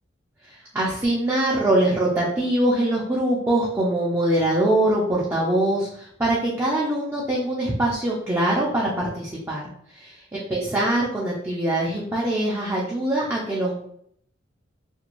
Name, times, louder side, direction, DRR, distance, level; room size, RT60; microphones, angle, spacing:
voice 1, 0.4-9.6 9.9-13.7, right 1 dB, 10° right, -6 dB, 0.5 m, -23 dB
2.5 x 2.2 x 2.9 m, 0.68 s
head